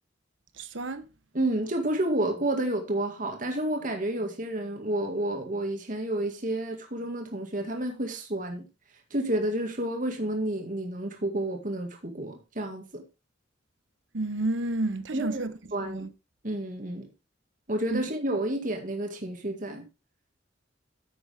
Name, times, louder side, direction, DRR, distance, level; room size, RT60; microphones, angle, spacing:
voice 1, 0.6-1.1 14.1-15.5 15.8-16.1 17.9-18.1, right 2 dB, 75° right, 1.1 m, -30 dB
voice 2, 1.3-8.7 9.1-13.0 15.1-15.4 15.7-16.1 16.4-17.1 17.7-19.9, right 1 dB, 45° right, 2.0 m, -30 dB
10.0 x 7.8 x 3.4 m
head